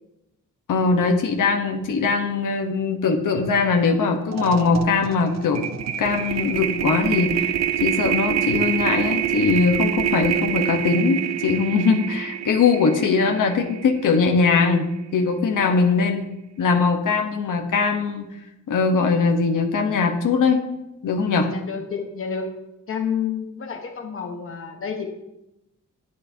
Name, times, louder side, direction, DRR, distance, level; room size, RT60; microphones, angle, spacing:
voice 1, 0.7-5.7 6.0-14.9 15.1-16.2 16.6-18.3 18.7-20.6 21.0-21.5, left 4 dB, 75° left, 3 dB, 1.1 m, -21 dB
sound 1, 3.8-4.0 4.3-14.5, right 10 dB, 55° right, 0.6 m, -26 dB
voice 2, 21.4-22.5 22.9-25.1, left 7 dB, 40° left, 3 dB, 1.2 m, -29 dB
12.5 x 8.5 x 2.8 m, 0.91 s
wide cardioid pair, 125°, 32 cm